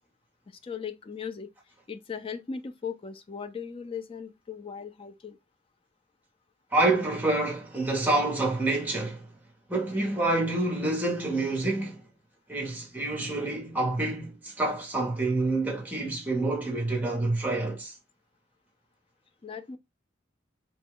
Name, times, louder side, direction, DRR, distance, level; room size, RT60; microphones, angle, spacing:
voice 1, 0.6-1.5 1.9-5.4 19.4-19.8, left 6 dB, 30° left, 0.4 m, -38 dB
voice 2, 6.7-9.3 9.7-12.0 12.5-17.9, right 2 dB, 10° right, 0.9 m, -27 dB
3.0 x 2.2 x 3.4 m
head